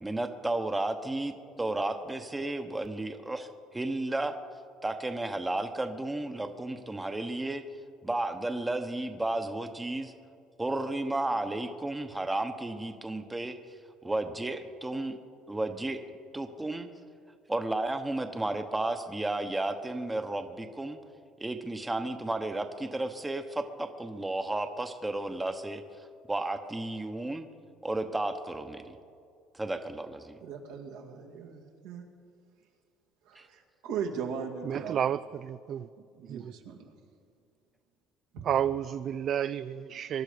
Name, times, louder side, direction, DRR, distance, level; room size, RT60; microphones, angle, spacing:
voice 1, 0.0-4.4 4.8-7.6 8.0-10.1 10.6-13.6 14.0-15.2 15.5-16.0 16.3-16.9 17.5-21.0 21.4-25.8 26.3-27.5 27.8-28.9 29.5-30.4 33.3-33.5, right 2 dB, 10° right, 7 dB, 1.0 m, -33 dB
voice 2, 30.4-32.0 33.3-35.0 36.1-36.9 38.3-38.5, right 6 dB, 85° right, 1 dB, 2.1 m, -38 dB
voice 3, 34.6-35.9 36.3-36.5 38.4-40.2, right 9 dB, 50° right, 13 dB, 0.4 m, -31 dB
23.0 x 12.0 x 5.1 m, 2.4 s
supercardioid pair, 100°, 0 cm